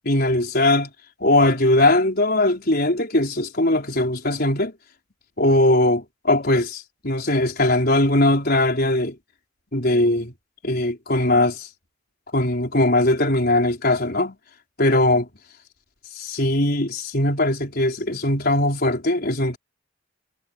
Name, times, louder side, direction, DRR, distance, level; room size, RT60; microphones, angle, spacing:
voice 1, 0.0-0.9 1.2-4.7 5.4-9.2 9.7-10.3 10.6-11.7 12.3-14.4 14.8-15.3 16.1-19.6, left 1 dB, 50° left, 4.8 m, -20 dB
head